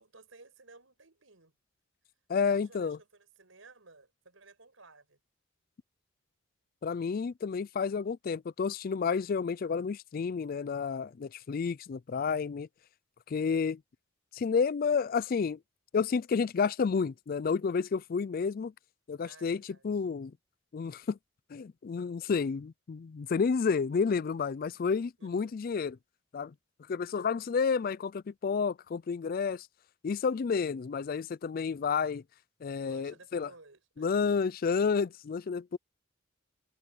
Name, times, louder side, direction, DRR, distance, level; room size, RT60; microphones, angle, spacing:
voice 1, 0.0-1.6 2.4-5.2 19.2-20.0 25.2-25.5 32.8-34.3, right 3 dB, 75° right, 5.6 m, -56 dB
voice 2, 2.3-3.0 6.8-12.7 13.3-13.8 14.3-15.6 15.9-18.7 19.1-20.3 20.7-21.2 21.5-26.0 26.3-26.5 26.9-29.7 30.0-32.2 32.6-33.5 34.0-35.8, left 5 dB, 45° left, 0.3 m, -30 dB
head